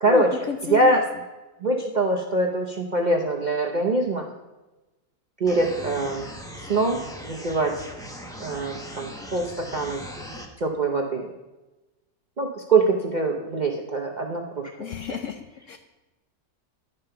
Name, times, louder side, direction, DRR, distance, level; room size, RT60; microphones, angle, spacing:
voice 1, 0.0-1.0 14.8-15.8, left 7 dB, 70° left, 6 dB, 0.7 m, -32 dB
voice 2, 0.6-1.0 1.6-4.2 5.4-6.3 6.7-7.0 7.2-7.7 8.4-10.0 10.6-11.3 12.4-14.7 15.1-15.2, right 2 dB, 50° right, 0 dB, 0.5 m, -23 dB
sound 1, 5.5-10.5, equal, 5° left, 0.6 m, -39 dB
11.0 x 5.3 x 5.6 m, 1.1 s
omnidirectional pair, 1.8 m